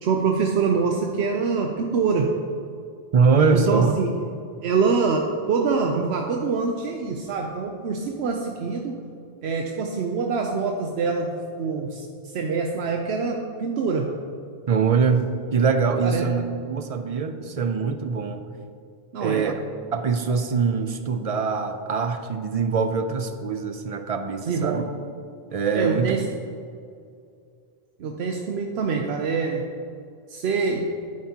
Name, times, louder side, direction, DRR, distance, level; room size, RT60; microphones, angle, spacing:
voice 1, 0.0-2.3 3.5-4.1 4.6-9.0 9.4-12.0 12.3-14.1 16.0-16.3 19.1-19.6 24.5-24.9 25.7-26.3 28.0-29.6 30.3-30.9, right 5 dB, 80° right, 2 dB, 0.9 m, -25 dB
voice 2, 3.1-3.9 14.7-18.5 19.2-19.6 19.9-24.8 25.5-26.2, right 5 dB, 50° right, 8 dB, 0.4 m, -23 dB
9.5 x 8.6 x 2.8 m, 2.4 s
omnidirectional pair, 1.1 m